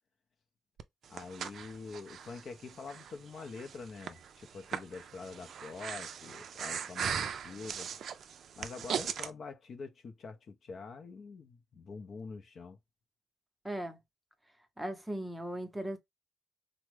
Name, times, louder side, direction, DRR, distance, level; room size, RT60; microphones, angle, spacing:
Breathing, 0.8-9.3, right 7 dB, 60° right, 0.3 m, -39 dB
voice 1, 1.1-7.9 8.6-12.8, left 4 dB, 50° left, 0.5 m, -45 dB
voice 2, 13.6-14.0 14.8-16.0, right 1 dB, 10° right, 0.7 m, -37 dB
3.3 x 2.0 x 3.1 m
cardioid pair, 90°, 0 cm